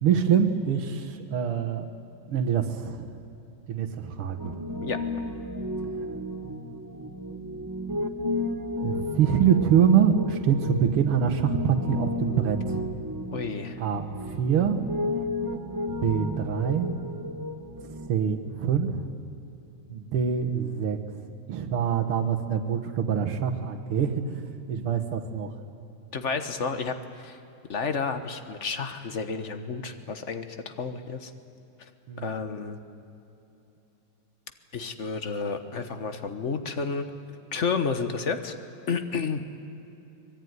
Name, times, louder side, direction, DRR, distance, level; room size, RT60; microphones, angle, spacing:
voice 1, 0.0-1.9 2.3-3.2 3.7-4.6 5.9-6.2 8.8-12.8 13.8-14.8 15.9-16.9 17.8-19.1 19.9-21.2 21.5-25.5 32.1-32.3, right 7 dB, 90° right, 6 dB, 2.2 m, -25 dB
Piano, 4.4-18.1, left 1 dB, 15° right, 0.7 m, -33 dB
voice 2, 13.3-13.8 26.1-27.4 27.7-31.3 32.2-32.8 34.7-37.1 37.5-38.6 38.9-39.5, left 5 dB, 40° left, 9 dB, 1.3 m, -31 dB
24.5 x 21.0 x 9.5 m, 2.9 s
omnidirectional pair, 2.3 m